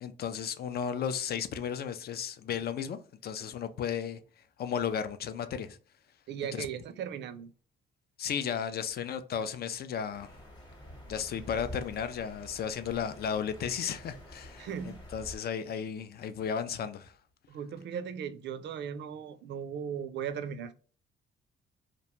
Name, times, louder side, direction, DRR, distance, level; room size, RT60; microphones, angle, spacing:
voice 1, 0.0-4.2 4.6-5.8 6.5-6.7 8.2-10.3 11.1-17.1, left 7 dB, 50° left, 0.4 m, -34 dB
voice 2, 6.3-7.5 14.6-15.0 17.5-20.7, right 8 dB, 60° right, 0.4 m, -37 dB
sound 1, 10.1-15.4, equal, 20° left, 1.0 m, -48 dB
2.5 x 2.2 x 2.9 m
cardioid pair, 90°, 20 cm